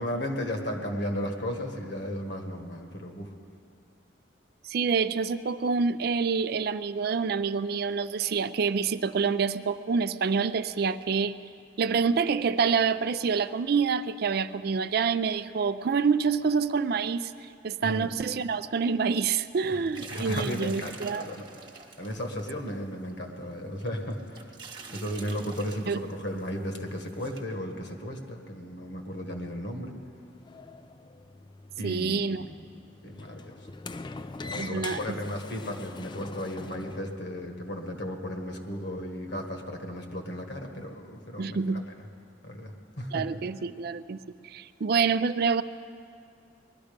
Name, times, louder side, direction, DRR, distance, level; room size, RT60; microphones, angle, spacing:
voice 1, 0.0-3.3 17.8-18.1 19.6-19.8 20.1-24.5 24.9-30.0 31.8-32.6 33.0-33.6 34.4-41.8 42.4-43.2, equal, 65° left, 3 dB, 1.6 m, -35 dB
voice 2, 4.7-11.4 11.8-17.3 17.6-21.3 25.9-26.0 31.8-32.4 34.6-35.2 41.4-41.8 43.1-44.2 44.4-45.6, right 5 dB, 55° right, 13 dB, 0.4 m, -27 dB
sound 1, 19.6-22.7 23.1-23.2 23.8-26.1 26.4-26.5 27.0-27.4, right 4 dB, 25° right, 1.1 m, -46 dB
Sliding door, 30.1-37.1, left 3 dB, 25° left, 0.3 m, -43 dB
20.0 x 12.5 x 5.2 m, 2.4 s
head